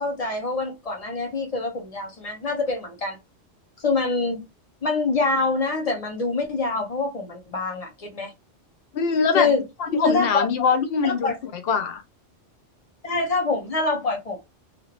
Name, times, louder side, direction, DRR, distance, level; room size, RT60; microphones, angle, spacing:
voice 1, 0.0-3.2 3.8-4.4 4.8-8.3 9.3-9.6 10.0-10.5 11.0-11.4 13.0-14.4, left 3 dB, 35° left, 1.0 m, -25 dB
voice 2, 8.9-9.5 9.8-11.3 11.7-12.0, left 5 dB, 60° left, 0.9 m, -22 dB
2.8 x 2.6 x 2.9 m
omnidirectional pair, 1.2 m